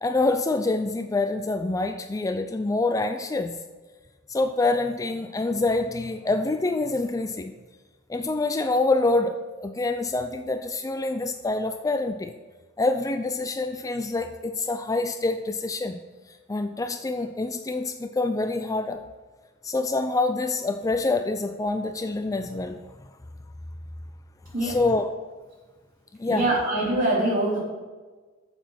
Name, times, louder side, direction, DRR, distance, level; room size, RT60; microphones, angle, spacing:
voice 1, 0.0-3.6 4.3-7.5 8.1-12.3 12.8-16.0 16.5-19.0 19.6-22.8 24.6-25.1 26.2-26.5, left 2 dB, 15° left, 7 dB, 0.4 m, -26 dB
voice 2, 26.3-27.6, right 1 dB, 45° right, -4 dB, 3.3 m, -23 dB
8.9 x 7.2 x 5.7 m, 1.3 s
head